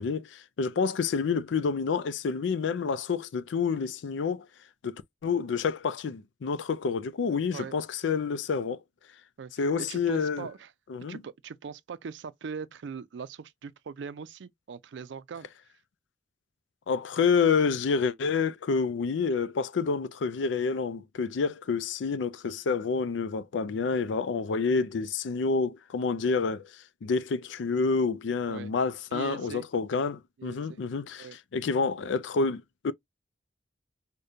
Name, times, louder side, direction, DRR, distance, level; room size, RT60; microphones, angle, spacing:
voice 1, 0.0-4.5 4.8-8.8 9.6-10.5 10.9-11.2 16.9-26.6 27.0-31.3 31.5-32.9, left 5 dB, 80° left, 0.4 m, -28 dB
voice 2, 9.4-10.7 11.1-15.5 28.5-28.7 29.1-29.7 30.4-30.8 31.2-31.4, right 6 dB, 75° right, 0.4 m, -41 dB
5.0 x 2.2 x 2.7 m
head